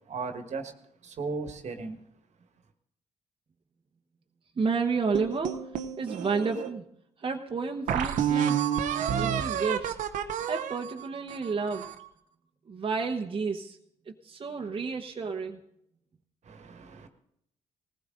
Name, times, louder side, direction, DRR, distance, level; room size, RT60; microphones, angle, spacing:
voice 1, 0.1-0.7 1.0-2.0 16.4-17.1, right 4 dB, 65° right, 1.5 m, -36 dB
voice 2, 4.6-5.6 6.0-6.8 7.2-8.9 9.2-10.0 10.5-11.9 12.7-13.8 14.1-15.6, right 4 dB, 45° right, 1.1 m, -31 dB
sound 1, 5.1-6.7 7.3-7.4 7.9-12.1, right 9 dB, 80° right, 0.9 m, -30 dB
19.0 x 15.5 x 3.8 m
supercardioid pair, 60°, 13 cm